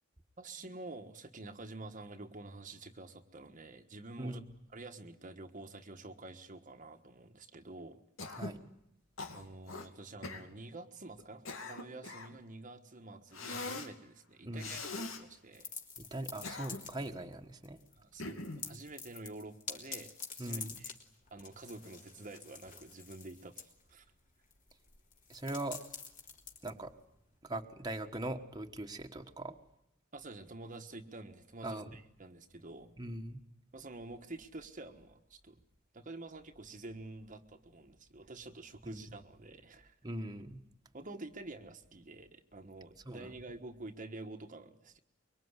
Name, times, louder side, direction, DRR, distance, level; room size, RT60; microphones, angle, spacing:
voice 1, 0.4-4.4 4.7-8.0 9.3-15.7 18.0-20.9 21.3-24.0 30.1-33.0 33.7-35.6 35.9-39.9 40.9-45.0, right 2 dB, 40° right, 5 dB, 1.4 m, -48 dB
Cough, 8.2-8.6 9.2-9.9 10.2-10.5 11.2-12.4 13.3-13.9 14.6-15.2 16.2-17.0 18.2-18.7, left 3 dB, 90° left, 2.6 m, -42 dB
voice 2, 14.4-14.8 16.0-17.8 20.4-20.8 25.3-25.8 26.6-26.9 27.4-29.6 31.6-32.0 33.0-33.4 38.8-39.0 40.0-40.6 43.0-43.3, right 1 dB, 20° right, 3 dB, 1.5 m, -40 dB
sound 1, 15.5-17.3 17.6-18.0 18.3-27.4, left 6 dB, 40° left, 3.3 m, -48 dB
24.5 x 23.0 x 9.8 m, 0.79 s
head